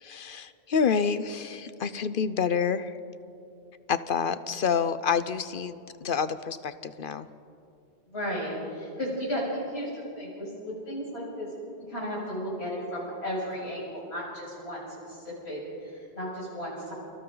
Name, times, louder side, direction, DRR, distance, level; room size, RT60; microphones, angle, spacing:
voice 1, 0.0-3.0 3.9-7.3, left 6 dB, 60° left, 13 dB, 0.9 m, -28 dB
voice 2, 8.1-11.5 11.8-16.9, equal, 90° left, -5 dB, 7.6 m, -34 dB
29.0 x 25.0 x 4.0 m, 2.6 s
omnidirectional pair, 1.0 m